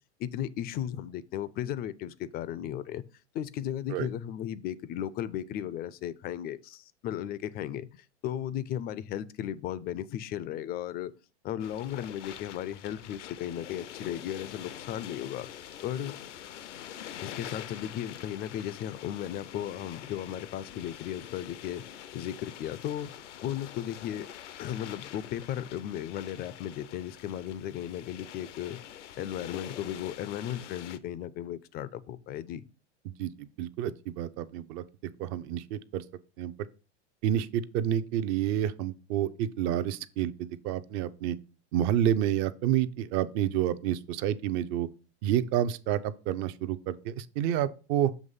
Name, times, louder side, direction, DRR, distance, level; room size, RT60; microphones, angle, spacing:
voice 1, 0.2-3.0 3.3-11.1 11.4-15.5 15.8-16.1 17.2-21.8 22.1-23.1 23.4-24.3 24.6-28.8 29.2-32.6, left 11 dB, 30° left, 0.4 m, -35 dB
sound 1, 11.6-31.0, left 11 dB, 80° left, 0.6 m, -45 dB
voice 2, 33.1-34.8 35.2-36.0 36.4-36.5 37.2-41.4 41.7-44.9 45.2-48.1, right 11 dB, 45° right, 0.6 m, -29 dB
7.3 x 3.1 x 5.4 m
hypercardioid pair, 100°, 35 cm